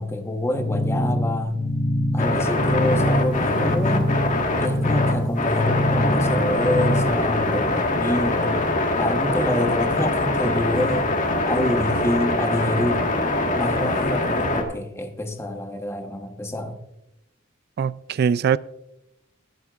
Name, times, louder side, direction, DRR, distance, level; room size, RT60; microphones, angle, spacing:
voice 1, 0.0-1.6 2.1-4.1 4.6-8.7 9.0-11.1 11.5-13.0 13.5-16.8, left 1 dB, 15° left, 5 dB, 1.1 m, -26 dB
sound 1, 0.5-7.1, left 1 dB, 70° left, 2.6 m, -24 dB
sound 2, 2.2-14.6, left 2 dB, 40° left, 1.6 m, -23 dB
voice 2, 17.8-18.6, right 7 dB, 50° right, 18 dB, 0.3 m, -21 dB
24.0 x 8.0 x 2.4 m, 0.87 s
head